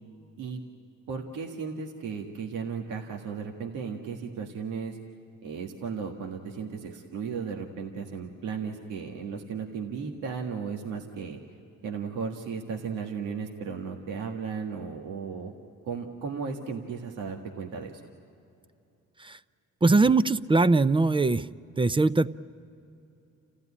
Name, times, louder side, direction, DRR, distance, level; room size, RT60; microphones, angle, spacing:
voice 1, 1.1-5.0 5.4-11.4 11.8-15.5 15.8-17.9, right 6 dB, 90° right, 1 dB, 1.8 m, -35 dB
voice 2, 19.8-21.5 21.8-22.3, right 3 dB, 15° right, 14 dB, 0.5 m, -21 dB
29.5 x 15.0 x 9.8 m, 2.8 s
cardioid pair, 90°, 30 cm